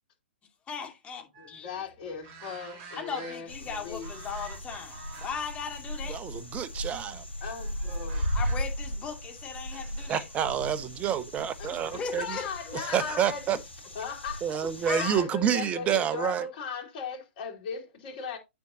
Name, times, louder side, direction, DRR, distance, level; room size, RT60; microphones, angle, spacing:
voice 1, 0.7-1.7 2.9-6.2 8.3-10.2 11.7-13.1 14.9-15.1, left 6 dB, 20° left, 2.5 m, -38 dB
sound 1, 1.3-3.7 4.0-5.5 5.9-6.1 7.4-8.6, right 4 dB, 35° right, 2.6 m, -48 dB
voice 2, 1.4-4.1 7.4-8.3 11.6-13.6 13.9-14.4 15.0-18.4, left 5 dB, 45° left, 4.3 m, -38 dB
sound 2, 3.5-15.2, equal, 70° left, 2.9 m, -37 dB
voice 3, 6.1-7.2 9.7-9.8 10.1-12.4 12.9-13.6 14.4-16.4, right 9 dB, 20° right, 0.9 m, -28 dB
9.0 x 7.0 x 2.8 m
figure-of-eight pair, 120°, 6 cm